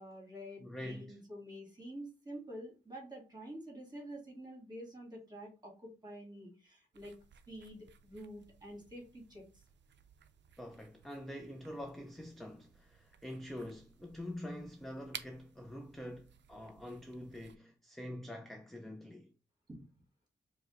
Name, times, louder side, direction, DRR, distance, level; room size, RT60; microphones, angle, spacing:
voice 1, 0.0-7.1 7.5-9.4 19.7-19.8, equal, 20° right, 1.6 m, -48 dB
voice 2, 0.6-1.2 10.6-19.3, left 1 dB, ahead, 0.3 m, -45 dB
sound 1, 6.9-17.6, right 8 dB, 75° right, 0.4 m, -56 dB
4.9 x 2.1 x 3.7 m
wide cardioid pair, 160°, 19 cm